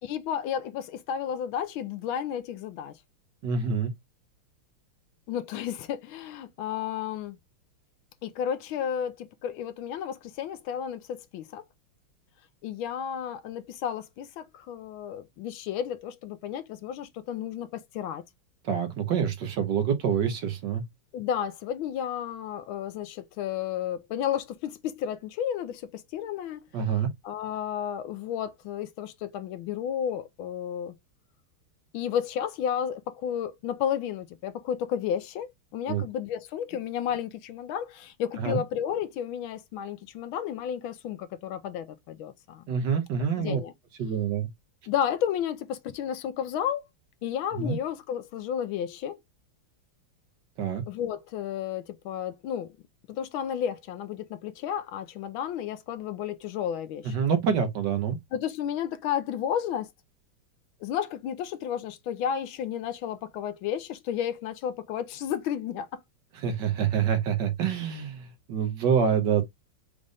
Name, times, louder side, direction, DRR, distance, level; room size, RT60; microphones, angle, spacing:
voice 1, 0.0-3.0 5.3-7.4 8.2-11.6 12.6-18.2 21.1-26.6 26.9-31.0 31.9-42.6 43.4-43.7 44.9-46.8 47.2-49.2 50.9-52.7 53.1-57.2 58.3-59.9 60.8-65.9, left 9 dB, 75° left, 1.4 m, -32 dB
voice 2, 3.4-3.9 18.6-20.8 26.7-27.1 35.9-36.0 38.4-38.6 42.7-43.6 44.0-44.5 47.6-47.8 50.6-50.8 57.0-58.2 66.4-69.4, right 7 dB, 65° right, 1.4 m, -26 dB
5.3 x 2.5 x 3.4 m
omnidirectional pair, 2.3 m